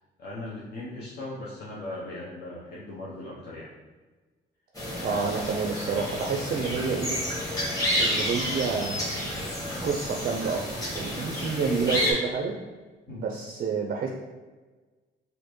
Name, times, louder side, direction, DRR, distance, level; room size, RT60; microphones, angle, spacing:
voice 1, 0.0-3.7 13.1-13.3, left 2 dB, 55° left, -6 dB, 0.7 m, -38 dB
sound 1, 4.8-12.1, equal, 20° left, 1.4 m, -30 dB
voice 2, 5.0-7.2 8.0-9.0 9.8-10.6 10.9-12.5 13.1-14.1, right 5 dB, 45° right, 1 dB, 0.4 m, -29 dB
4.3 x 2.6 x 3.0 m, 1.3 s
cardioid pair, 90°, 20 cm